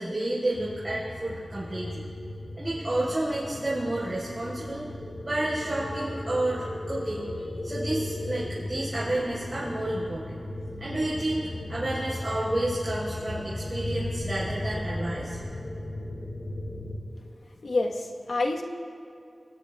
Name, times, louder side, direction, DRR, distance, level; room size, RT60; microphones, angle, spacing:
voice 1, 0.0-2.0 2.6-4.8 5.2-10.4 10.8-15.4, right 1 dB, 40° right, -8 dB, 4.1 m, -30 dB
sound 1, 0.5-17.0, left 1 dB, 65° left, 2.2 m, -36 dB
voice 2, 17.6-18.6, left 2 dB, 85° left, 1 dB, 1.1 m, -27 dB
23.5 x 18.0 x 2.3 m, 2.5 s
wide cardioid pair, 55°, 0 cm